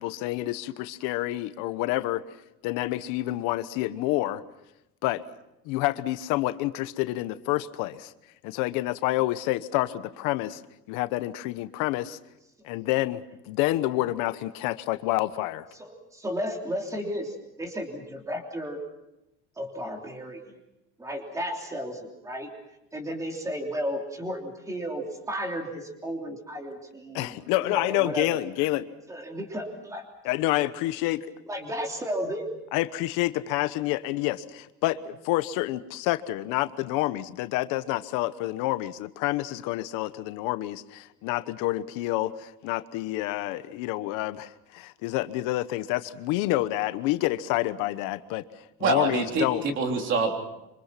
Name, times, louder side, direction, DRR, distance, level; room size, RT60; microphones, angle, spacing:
voice 1, 0.0-2.2 2.6-4.4 5.0-5.2 5.6-8.1 8.4-10.6 10.9-12.2 12.6-15.7 27.1-28.9 30.2-31.3 32.7-48.4 48.8-49.6, left 16 dB, 85° left, 12 dB, 1.1 m, -28 dB
voice 2, 15.8-18.8 19.6-20.6 21.0-22.5 22.9-27.3 27.6-28.4 29.1-30.0 31.5-32.5, equal, 10° right, 2 dB, 3.3 m, -33 dB
voice 3, 48.8-50.3, right 3 dB, 40° right, 3 dB, 3.6 m, -25 dB
26.0 x 26.0 x 5.8 m, 0.89 s
cardioid pair, 180°, 31 cm